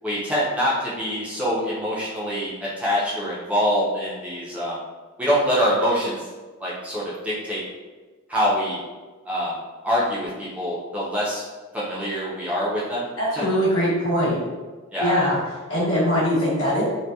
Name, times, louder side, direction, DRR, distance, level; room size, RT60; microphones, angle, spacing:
voice 1, 0.0-4.8 5.2-6.3 6.6-7.6 8.3-8.8 9.3-9.5 9.8-11.4 11.7-13.1 13.4-13.5 14.9-15.1, equal, 5° right, -8 dB, 0.4 m, -25 dB
voice 2, 13.2-14.4 15.0-15.4 15.7-16.8, equal, 75° left, -7 dB, 1.0 m, -21 dB
2.7 x 2.1 x 2.2 m, 1.3 s
head